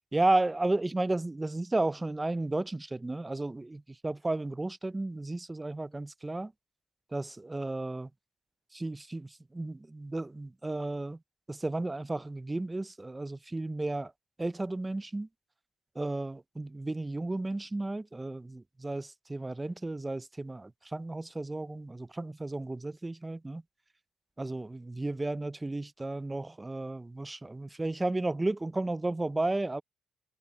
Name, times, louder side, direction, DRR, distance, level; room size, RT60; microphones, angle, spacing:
voice 1, 0.1-6.5 7.1-8.1 8.7-11.2 11.5-14.1 14.4-15.3 16.0-23.6 24.4-29.8, right 2 dB, 15° right, 0.5 m, -33 dB
cardioid pair, 90°, 0 cm